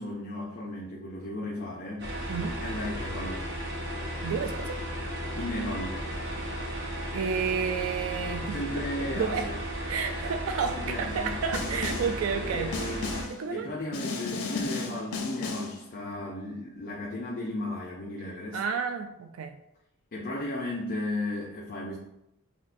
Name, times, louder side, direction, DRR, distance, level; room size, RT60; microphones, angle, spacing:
voice 1, 0.0-2.1 2.6-3.5 5.3-6.0 8.5-9.6 10.7-11.4 12.4-13.2 13.5-18.6 20.1-22.0, left 1 dB, 40° left, 0.5 m, -35 dB
sound 1, 2.0-13.2, equal, 50° right, 0.9 m, -35 dB
voice 2, 4.2-4.8 7.1-8.6 9.2-9.5 9.9-12.7 13.3-13.7 18.5-19.6, right 6 dB, 65° right, 0.3 m, -31 dB
Snare drum, 11.5-12.2 12.7-13.4 13.9-15.8, left 4 dB, 90° left, 0.6 m, -34 dB
6.2 x 2.2 x 2.6 m
head